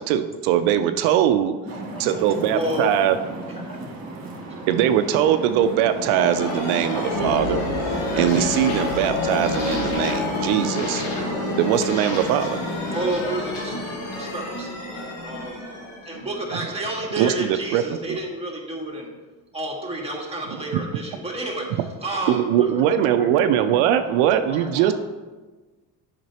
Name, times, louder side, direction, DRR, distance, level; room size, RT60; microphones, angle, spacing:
voice 1, 0.0-1.5 2.0-3.2 4.7-7.6 7.9-11.0 11.6-12.6 17.2-17.8 18.1-18.2 22.3-24.9, right 10 dB, 75° right, 9 dB, 0.5 m, -21 dB
voice 2, 1.6-2.9 3.6-3.8 10.8-10.9 17.1-17.3 22.8-24.9, left 1 dB, 20° left, 2 dB, 0.8 m, -39 dB
sound 1, 1.7-13.1, right 2 dB, 30° right, 1.9 m, -36 dB
voice 3, 2.5-2.9 12.9-15.6 16.0-19.1 19.5-22.7, right 1 dB, 10° right, -1 dB, 1.8 m, -30 dB
sound 2, 5.5-17.1, left 2 dB, 80° left, 1.6 m, -28 dB
7.5 x 5.9 x 2.9 m, 1.3 s
supercardioid pair, 75°, 48 cm